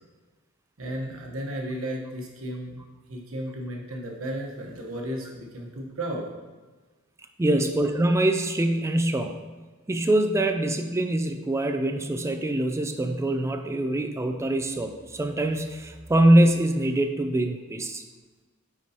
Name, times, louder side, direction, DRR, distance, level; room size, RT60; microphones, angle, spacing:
voice 1, 0.8-2.8 3.1-6.3 7.5-7.7, right 1 dB, 75° right, -1 dB, 1.1 m, -34 dB
voice 2, 7.4-9.4 9.9-18.0, right 1 dB, 15° right, 6 dB, 0.3 m, -24 dB
9.5 x 4.5 x 2.8 m, 1.3 s
head